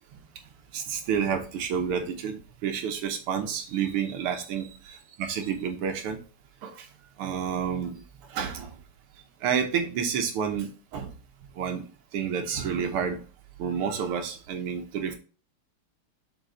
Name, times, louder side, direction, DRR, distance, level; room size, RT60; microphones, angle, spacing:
voice 1, 0.7-6.2 6.6-6.9 7.2-8.0 8.3-8.8 9.4-11.1 11.6-11.8 12.1-13.2 13.6-15.2, right 7 dB, 85° right, 5 dB, 1.8 m, -30 dB
7.9 x 4.1 x 3.7 m, 0.36 s
omnidirectional pair, 2.4 m